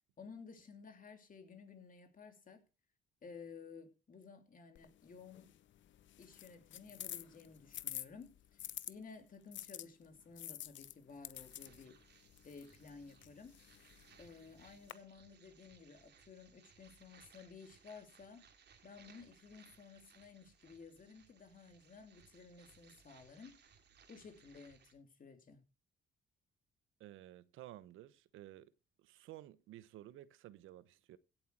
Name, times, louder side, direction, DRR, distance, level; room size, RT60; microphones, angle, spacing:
voice 1, 0.2-2.6 3.2-5.5 6.2-12.0 12.4-13.6 14.2-18.5 18.8-23.6 24.1-25.6, left 5 dB, 45° left, 3.1 m, -55 dB
sound 1, 4.8-8.9 9.5-14.9, left 12 dB, 70° left, 0.8 m, -50 dB
sound 2, 11.3-24.9, right 6 dB, 55° right, 2.8 m, -66 dB
voice 2, 27.0-28.7 29.0-31.2, right 14 dB, 90° right, 0.9 m, -54 dB
16.5 x 8.0 x 4.6 m
cardioid pair, 90°, 20 cm